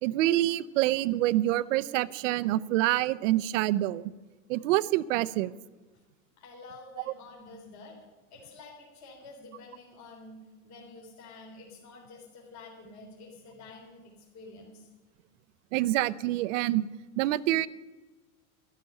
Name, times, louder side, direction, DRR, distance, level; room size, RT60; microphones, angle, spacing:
voice 1, 0.0-4.1 4.5-5.5 7.0-7.1 15.7-16.9 17.2-17.7, right 15 dB, 60° right, 18 dB, 0.7 m, -26 dB
voice 2, 6.4-8.0 8.3-10.4 10.6-14.9, left 3 dB, 40° left, -2 dB, 3.6 m, -49 dB
12.5 x 12.0 x 6.7 m, 1.2 s
hypercardioid pair, 105°, 42 cm